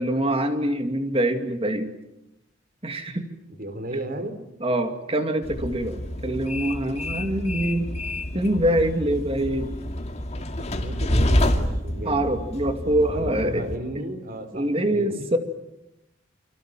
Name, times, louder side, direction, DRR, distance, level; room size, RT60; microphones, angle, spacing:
voice 1, 0.0-1.9 2.8-3.3 4.6-7.9 8.3-9.7 12.1-13.7 13.9-14.0 14.5-15.4, right 1 dB, 30° right, 7 dB, 2.5 m, -24 dB
voice 2, 3.5-4.4 10.4-12.2 13.0-15.4, right 1 dB, 50° right, 10 dB, 3.9 m, -34 dB
Train, 5.4-13.8, left 1 dB, 35° left, 2.5 m, -28 dB
30.0 x 25.0 x 7.5 m, 0.87 s
head